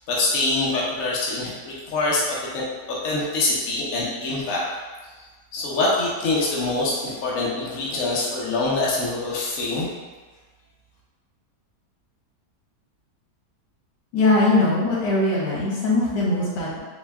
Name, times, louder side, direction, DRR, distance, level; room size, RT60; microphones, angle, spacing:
voice 1, 0.0-4.7 5.5-9.9, left 2 dB, 60° left, -5 dB, 1.1 m, -25 dB
voice 2, 14.1-16.8, left 2 dB, 80° left, -6 dB, 1.8 m, -21 dB
4.4 x 2.2 x 3.4 m, 1.3 s
omnidirectional pair, 1.8 m